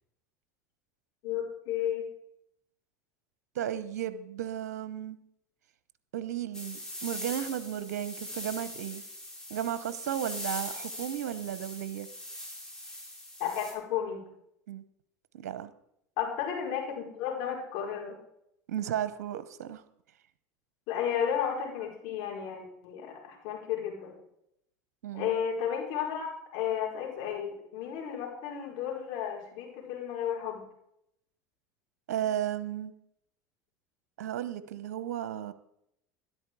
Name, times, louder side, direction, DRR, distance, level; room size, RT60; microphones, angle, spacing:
voice 1, 1.2-2.0 13.4-14.2 16.2-18.2 20.9-24.2 25.1-26.3 26.5-30.6, left 9 dB, 65° left, -1 dB, 5.1 m, -33 dB
voice 2, 3.5-5.2 6.1-9.0 9.5-12.1 14.7-14.8 15.3-15.7 18.7-19.8 25.0-25.3 32.1-32.9 34.2-35.5, right 10 dB, 80° right, 14 dB, 0.9 m, -34 dB
sound 1, 6.5-13.7, left 1 dB, 5° left, 5.3 m, -41 dB
12.5 x 11.0 x 4.8 m, 0.76 s
hypercardioid pair, 90°, 9 cm